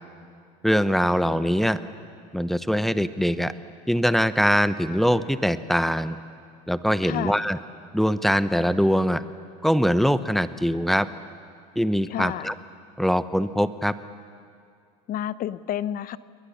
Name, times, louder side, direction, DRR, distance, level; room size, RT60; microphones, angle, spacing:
voice 1, 0.6-1.8 2.3-3.5 3.9-6.2 6.7-7.6 7.9-9.2 9.6-11.1 11.8-12.5 13.0-13.9, equal, ahead, 13 dB, 0.9 m, -22 dB
voice 2, 7.0-7.4 12.1-12.5 15.1-16.2, left 11 dB, 45° left, 17 dB, 0.8 m, -30 dB
29.5 x 21.5 x 7.2 m, 2.4 s
supercardioid pair, 95°, 21 cm